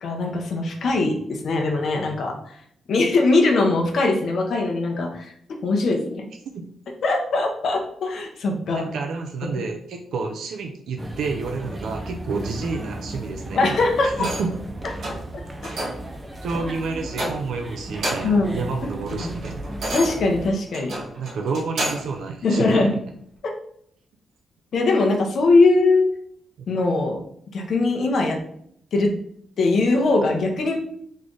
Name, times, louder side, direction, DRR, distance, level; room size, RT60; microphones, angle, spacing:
voice 1, 0.0-2.6 2.9-6.3 7.0-8.9 9.4-9.6 13.5-14.3 18.2-18.6 19.1-19.3 19.9-21.0 22.4-23.0 24.7-26.1 26.7-27.2 27.5-28.4 28.9-29.1 29.6-30.8, left 3 dB, 55° left, 2 dB, 0.8 m, -21 dB
voice 2, 8.7-13.8 14.0-14.5 16.4-19.6 21.2-22.9, right 4 dB, 75° right, 3 dB, 0.4 m, -29 dB
sound 1, 11.0-20.5, right 1 dB, 20° right, 0.6 m, -35 dB
sound 2, 14.2-14.6 15.0-15.3 15.6-16.1 16.5-16.7 17.1-17.6 17.9-18.5 18.8-22.2 22.7-22.8, right 1 dB, 55° right, 1.3 m, -31 dB
3.7 x 3.2 x 3.9 m, 0.68 s
wide cardioid pair, 150°, 0 cm